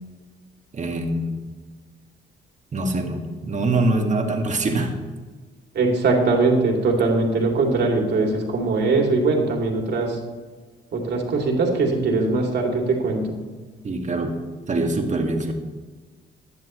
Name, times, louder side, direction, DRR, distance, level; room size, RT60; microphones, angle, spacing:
voice 1, 0.7-1.4 2.7-4.9 13.8-14.4 14.7-15.5, right 2 dB, 35° right, 3 dB, 2.1 m, -24 dB
voice 2, 5.7-10.2 10.9-13.4, right 3 dB, 60° right, 0 dB, 2.9 m, -21 dB
15.5 x 10.5 x 3.2 m, 1.4 s
cardioid pair, 90°, 20 cm